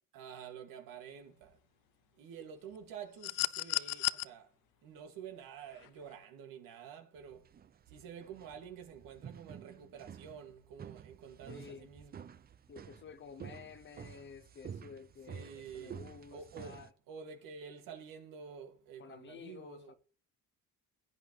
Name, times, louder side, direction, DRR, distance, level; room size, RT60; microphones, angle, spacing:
voice 1, 0.1-1.5 2.2-4.5 4.8-7.4 7.9-12.3 15.3-16.0 16.3-16.8 17.1-20.0, right 7 dB, 90° right, 2.4 m, -49 dB
sound 1, 3.2-4.3 5.8-5.9, left 21 dB, 85° left, 0.5 m, -33 dB
sound 2, 7.2-16.9, right 8 dB, 30° right, 0.5 m, -50 dB
voice 2, 11.5-11.9 12.7-16.9 19.0-19.9, left 6 dB, 35° left, 0.7 m, -51 dB
16.0 x 8.5 x 3.3 m
cardioid pair, 135°, 33 cm